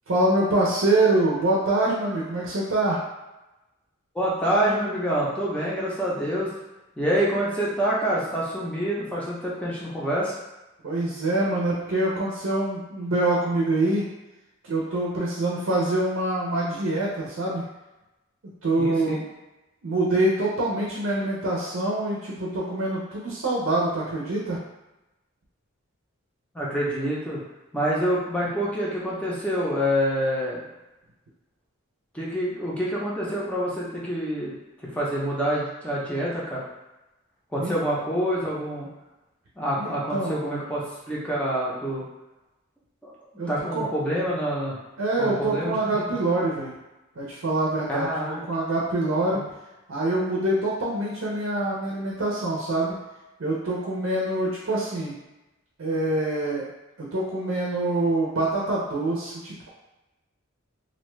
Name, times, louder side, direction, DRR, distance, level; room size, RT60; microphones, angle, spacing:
voice 1, 0.1-3.0 10.8-14.0 14.6-17.6 18.6-19.2 19.8-24.6 37.6-37.7 39.8-40.7 43.4-43.9 45.0-46.7 47.2-49.4 49.9-52.9 53.4-55.1 55.8-56.7 57.0-59.7, right 2 dB, 75° right, -5 dB, 0.6 m, -25 dB
voice 2, 4.1-6.5 7.0-10.4 18.8-19.2 26.5-27.4 27.7-30.6 32.1-34.5 34.9-36.6 37.5-38.9 39.6-42.0 43.0-43.1 43.5-44.8 45.2-46.1 47.9-48.4 49.3-49.4, equal, 5° left, -6 dB, 0.5 m, -27 dB
2.6 x 2.2 x 3.1 m, 1.0 s
head